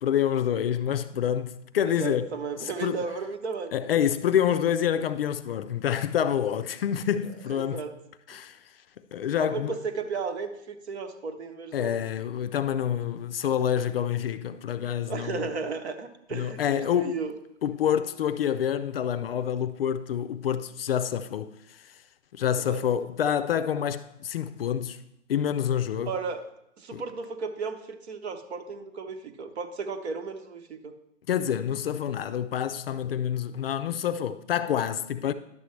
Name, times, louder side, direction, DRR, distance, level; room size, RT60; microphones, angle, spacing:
voice 1, 0.0-2.3 2.8-3.0 3.7-7.8 8.3-8.6 9.1-9.7 11.7-15.5 16.3-17.2 17.6-21.5 22.3-25.0 25.3-26.1 26.9-27.0 31.3-35.3, left 9 dB, 50° left, 0.5 m, -27 dB
voice 2, 1.8-3.7 7.5-7.9 8.3-8.4 9.4-11.9 15.1-17.3 22.6-22.8 26.0-26.5 26.8-30.9, right 5 dB, 60° right, 1.1 m, -34 dB
11.0 x 6.9 x 3.2 m
hypercardioid pair, 130°, 38 cm